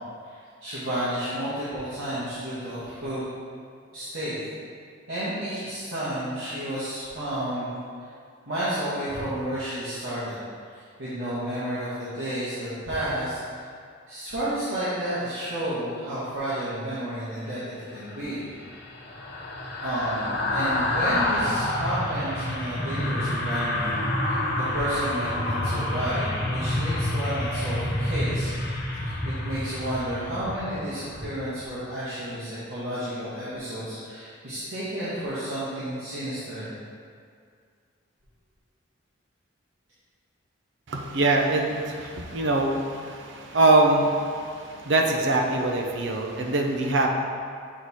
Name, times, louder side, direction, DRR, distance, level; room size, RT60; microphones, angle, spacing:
voice 1, 0.2-3.3 3.9-4.4 5.1-7.7 8.0-8.1 8.5-10.4 10.7-13.4 14.1-18.5 19.8-24.4 24.7-28.5 28.9-36.7, right 1 dB, 90° right, -13 dB, 1.5 m, -31 dB
sound 1, 18.0-31.3 31.6-31.8, left 1 dB, 55° left, 0.9 m, -28 dB
voice 2, 40.9-47.1, right 2 dB, 65° right, 1 dB, 0.7 m, -23 dB
7.8 x 3.2 x 4.1 m, 2.2 s
head